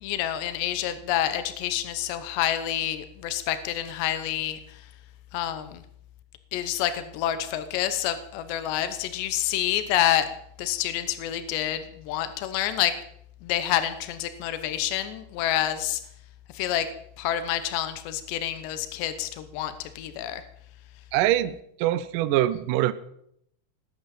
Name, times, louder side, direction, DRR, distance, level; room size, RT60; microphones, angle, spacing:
voice 1, 0.0-4.6 5.3-5.8 6.5-10.3 10.6-12.9 13.4-16.0 16.5-16.9 17.2-20.4, left 11 dB, 80° left, 11 dB, 3.2 m, -28 dB
voice 2, 21.1-22.9, right 14 dB, 90° right, 14 dB, 1.9 m, -24 dB
19.5 x 9.3 x 7.6 m, 0.71 s
omnidirectional pair, 4.9 m